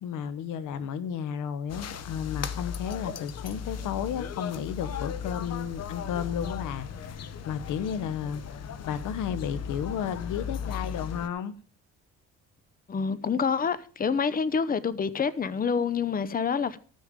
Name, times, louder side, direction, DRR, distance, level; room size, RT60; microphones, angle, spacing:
voice 1, 0.0-8.4 8.8-11.5, left 8 dB, 85° left, 1.0 m, -33 dB
sound 1, 1.7-11.3, left 7 dB, 55° left, 1.0 m, -36 dB
voice 2, 12.9-16.8, left 6 dB, 30° left, 0.8 m, -27 dB
15.0 x 6.5 x 5.2 m
cardioid pair, 90°, 30 cm